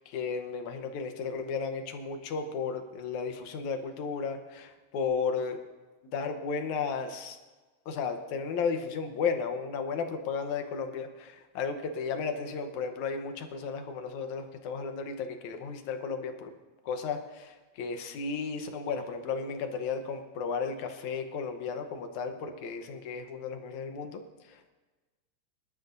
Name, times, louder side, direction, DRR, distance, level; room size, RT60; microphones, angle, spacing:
voice 1, 0.0-5.6 6.1-7.4 7.9-16.5 16.9-24.7, left 5 dB, 80° left, 7 dB, 2.4 m, -34 dB
24.5 x 12.5 x 2.6 m, 1.3 s
omnidirectional pair, 3.4 m